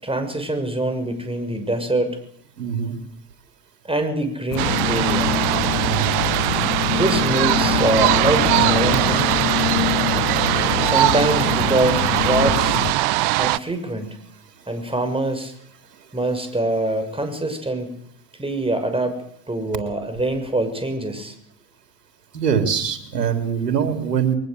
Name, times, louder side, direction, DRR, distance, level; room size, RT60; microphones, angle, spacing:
voice 1, 0.0-2.2 3.8-5.3 6.9-9.2 10.8-12.8 13.4-14.2 14.7-15.5 16.1-17.9 18.4-19.2 19.5-21.3, right 1 dB, 10° right, 8 dB, 6.6 m, -24 dB
voice 2, 2.6-3.0 5.8-6.2 14.6-14.7 15.9-16.1 22.3-24.4, right 7 dB, 90° right, 6 dB, 3.7 m, -23 dB
sound 1, 4.5-12.9, left 9 dB, 85° left, 1.3 m, -25 dB
sound 2, 4.6-13.6, right 18 dB, 55° right, 1.1 m, -21 dB
23.0 x 20.0 x 8.1 m, 0.66 s
hypercardioid pair, 70°, 47 cm